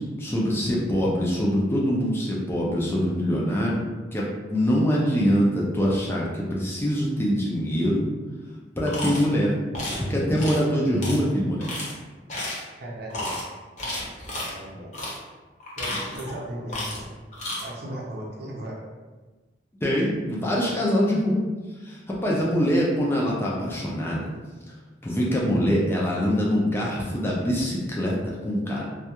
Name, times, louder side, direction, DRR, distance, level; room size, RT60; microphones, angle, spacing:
voice 1, 0.0-3.8 4.1-8.1 8.8-9.5 10.1-11.7 19.8-21.4 21.8-24.3 25.0-28.8, equal, 15° left, -4 dB, 0.4 m, -24 dB
sound 1, 8.9-9.3 9.7-10.0 10.4-10.6 11.0-11.2 11.6-11.9 12.3-12.7 13.1-13.4 13.8-14.5 14.9-15.2 15.6-16.3 16.7-17.1 17.3-17.6, left 1 dB, 40° left, 0.7 m, -32 dB
voice 2, 12.7-13.4 14.4-15.0 15.8-17.0 17.6-18.8 22.2-22.7, right 1 dB, 60° right, -3 dB, 0.6 m, -37 dB
2.3 x 2.2 x 2.8 m, 1.3 s
head